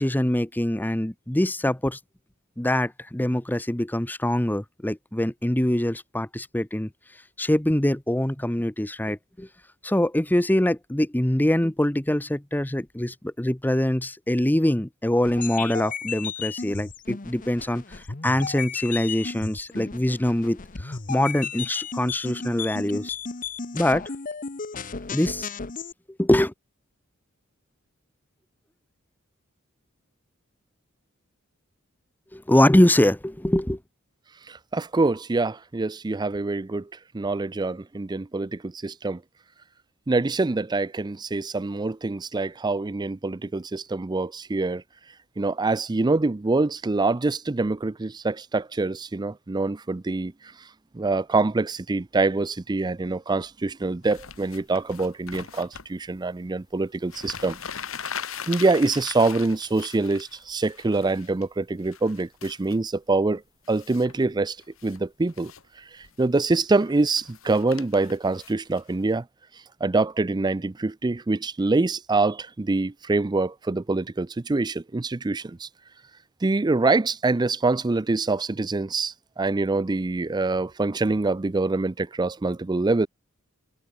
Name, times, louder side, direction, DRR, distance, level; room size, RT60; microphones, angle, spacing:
voice 1, 0.0-2.0 2.6-6.9 7.4-9.5 9.8-23.1 23.7-24.0 25.1-25.5 26.2-26.5 32.3-33.8, left 1 dB, 10° left, 0.9 m, -24 dB
sound 1, 15.2-25.9, left 5 dB, 40° left, 1.0 m, -34 dB
voice 2, 34.5-36.9 37.1-39.2 40.1-44.8 45.4-50.3 50.9-57.6 58.5-63.4 63.7-64.6 64.8-65.5 66.2-69.2 69.8-75.7 76.4-83.1, right 3 dB, 20° right, 0.5 m, -25 dB
sound 2, 54.0-55.9 56.8-56.9 57.1-61.4 61.8-62.8 63.6-64.2 64.6-65.0 65.3-65.6 66.0-69.2, left 7 dB, 75° left, 2.3 m, -40 dB
head